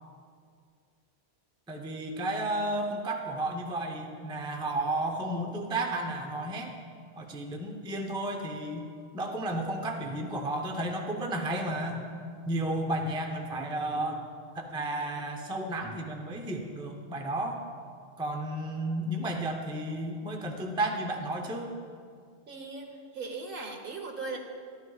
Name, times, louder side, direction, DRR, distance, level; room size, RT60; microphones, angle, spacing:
voice 1, 1.7-6.7 7.2-12.0 12.5-14.3 14.6-17.6 18.2-21.7, right 1 dB, 5° right, 3 dB, 0.5 m, -32 dB
voice 2, 22.5-24.4, right 3 dB, 55° right, 3 dB, 1.2 m, -38 dB
12.0 x 11.0 x 2.3 m, 2.1 s
omnidirectional pair, 1.1 m